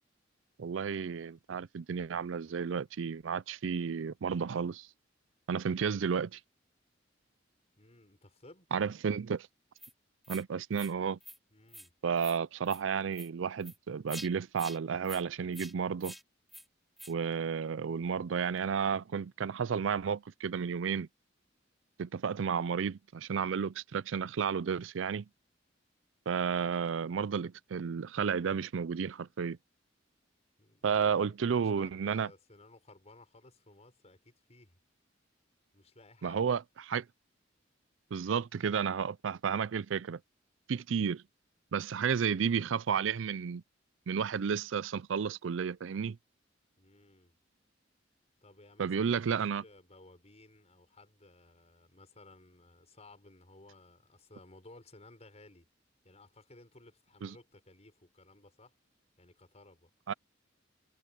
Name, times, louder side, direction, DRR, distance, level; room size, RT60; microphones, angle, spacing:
voice 1, 0.6-4.9 5.5-6.4 8.7-9.5 10.3-11.2 12.0-16.1 17.1-21.1 22.0-25.3 26.3-29.6 30.8-32.3 36.2-37.1 38.1-40.2 40.7-41.2 41.7-43.6 44.1-46.2 48.8-49.6 57.2-57.3 60.1-60.2, right 6 dB, 80° right, 0.4 m, -32 dB
voice 2, 7.8-8.7 11.5-11.9 30.6-34.8 35.7-36.5 46.8-47.3 48.4-55.7 56.0-58.7 59.2-59.9, left 2 dB, 35° left, 6.6 m, -57 dB
sound 1, 9.8-9.9 10.2-10.4 10.7-10.9 11.2-11.4 11.7-11.9 12.2-12.4 12.7-12.8 13.1-13.3 13.6-13.8 14.1-14.3 14.6-14.8 15.0-15.2 15.5-15.7 16.0-16.2 16.5-16.6 17.0-17.1, equal, ahead, 1.0 m, -47 dB
head